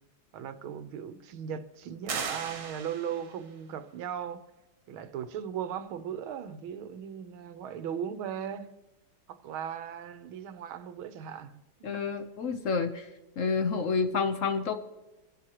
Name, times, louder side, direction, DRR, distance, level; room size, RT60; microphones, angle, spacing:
voice 1, 0.3-4.4 4.9-8.7 9.3-11.9, right 8 dB, 80° right, 1.7 m, -38 dB
sound 1, 2.1-3.5, right 5 dB, 60° right, 1.8 m, -37 dB
voice 2, 11.8-13.1 13.4-14.7, left 5 dB, 60° left, 0.9 m, -29 dB
24.5 x 11.0 x 3.0 m
omnidirectional pair, 2.3 m